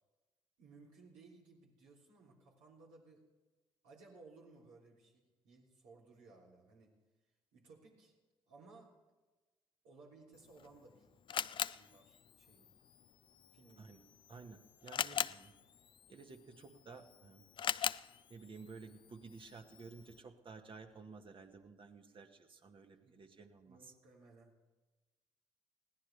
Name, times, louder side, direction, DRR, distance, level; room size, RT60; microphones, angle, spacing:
voice 1, 0.6-3.2 3.8-7.0 7.5-8.1 8.5-8.9 9.8-12.7 13.5-13.9 23.0-23.2 23.6-24.6, right 3 dB, 75° right, -3 dB, 3.3 m, -60 dB
Camera, 10.3-20.2, left 8 dB, 40° left, 0.4 m, -43 dB
voice 2, 14.3-15.5 16.1-17.4 18.3-23.8, right 4 dB, 45° right, 5 dB, 1.7 m, -54 dB
21.0 x 16.0 x 3.4 m, 1.2 s
hypercardioid pair, 45°, 12 cm